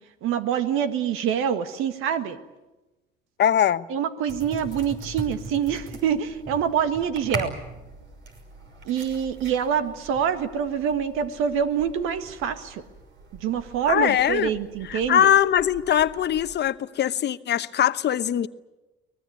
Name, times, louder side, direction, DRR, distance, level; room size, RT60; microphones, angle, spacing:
voice 1, 0.2-2.4 3.9-7.5 8.9-12.8 13.4-15.3, right 8 dB, 80° right, 1.7 m, -25 dB
voice 2, 3.4-3.9 13.9-14.5 14.9-18.5, left 10 dB, 55° left, 1.0 m, -21 dB
sound 1, 4.3-16.5, right 3 dB, 60° right, 5.8 m, -41 dB
24.0 x 19.5 x 9.5 m
supercardioid pair, 75°, 21 cm